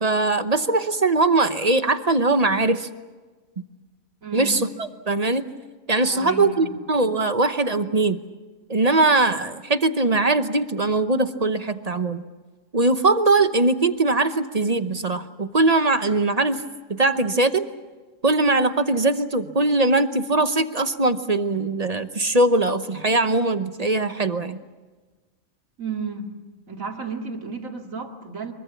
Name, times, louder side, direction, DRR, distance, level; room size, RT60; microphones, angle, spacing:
voice 1, 0.0-2.9 4.3-5.5 5.9-8.2 8.7-12.2 12.7-16.6 16.9-17.6 18.2-24.6, right 2 dB, 35° right, 10 dB, 0.9 m, -21 dB
voice 2, 4.2-4.6 6.1-6.8 25.8-26.3 26.7-28.5, right 4 dB, 80° right, 2 dB, 2.8 m, -32 dB
24.5 x 23.0 x 7.2 m, 1.3 s
omnidirectional pair, 1.4 m